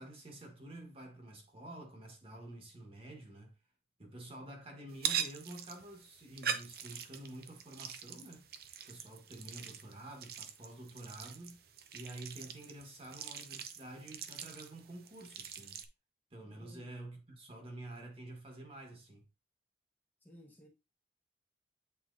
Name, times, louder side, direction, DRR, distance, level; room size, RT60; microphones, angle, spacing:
voice 1, 0.0-3.5 4.0-8.5 8.9-11.6 11.9-15.8 16.3-19.2, right 1 dB, 30° right, 1.5 m, -49 dB
sound 1, 4.9-15.9, right 8 dB, 55° right, 0.6 m, -43 dB
voice 2, 20.2-20.7, equal, 10° left, 1.1 m, -56 dB
8.2 x 4.4 x 2.6 m
head